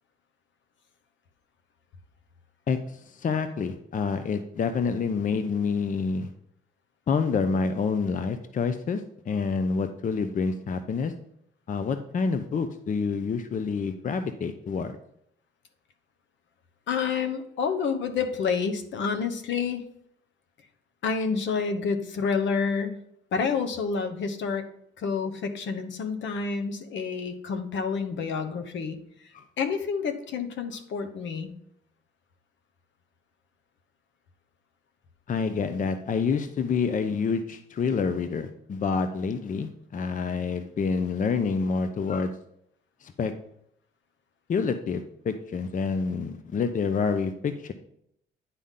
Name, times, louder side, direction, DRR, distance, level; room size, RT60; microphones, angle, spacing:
voice 1, 2.7-6.3 7.1-9.0 9.3-11.1 11.7-15.0 29.3-29.4 35.3-42.3 43.0-43.3 44.5-47.7, left 5 dB, 40° left, 9 dB, 0.6 m, -27 dB
voice 2, 16.9-19.8 21.0-23.0 23.3-24.6 25.0-29.0 29.6-31.5, left 5 dB, 70° left, 9 dB, 1.0 m, -28 dB
9.8 x 3.7 x 5.7 m, 0.72 s
cardioid pair, 90°, 20 cm